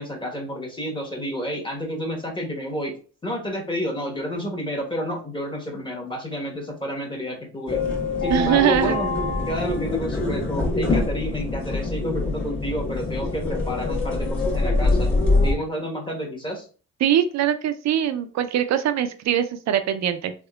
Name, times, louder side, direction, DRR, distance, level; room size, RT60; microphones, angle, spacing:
voice 1, 0.0-2.9 3.2-7.8 8.2-9.1 9.5-15.1 15.4-16.7, equal, 15° left, 0 dB, 1.2 m, -30 dB
sound 1, 7.7-15.5, left 2 dB, 40° left, 1.5 m, -24 dB
voice 2, 8.3-9.0 17.0-20.3, right 10 dB, 65° right, 10 dB, 0.5 m, -22 dB
3.6 x 3.5 x 2.3 m, 0.38 s
cardioid pair, 90°, 30 cm